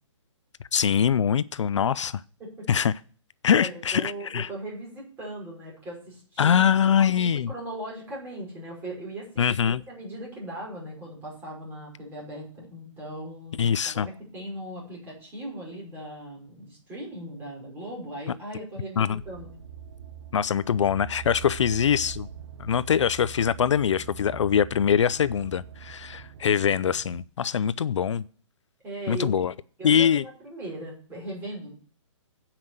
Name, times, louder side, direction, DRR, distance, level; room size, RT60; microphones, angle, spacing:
voice 1, 0.7-2.2 2.7-2.9 3.4-4.5 6.4-7.5 9.4-9.8 13.6-14.1 19.0-19.2 20.3-22.3 22.6-28.2 29.1-29.5 29.8-30.2, left 8 dB, 70° left, 0.5 m, -23 dB
voice 2, 3.5-13.6 13.8-19.5 28.8-29.4 29.8-31.7, right 1 dB, 10° right, 5.5 m, -39 dB
sound 1, 19.2-27.3, right 8 dB, 55° right, 0.8 m, -42 dB
8.7 x 5.8 x 7.9 m
hypercardioid pair, 160°, 16 cm